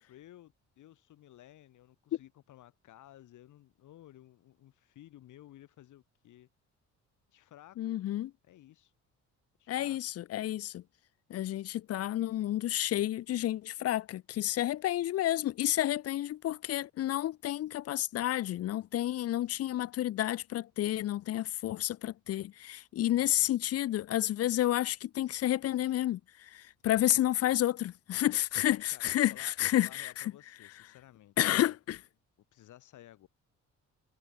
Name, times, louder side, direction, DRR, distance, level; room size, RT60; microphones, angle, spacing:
voice 1, 0.0-6.5 7.3-8.0 8.4-8.9 9.6-10.0 23.1-23.5 28.9-31.8 32.5-33.3, left 13 dB, 80° left, 3.6 m, -56 dB
voice 2, 7.8-8.3 9.7-10.8 11.3-30.3 31.4-32.0, left 13 dB, 55° left, 0.5 m, -30 dB
cardioid pair, 90°, 30 cm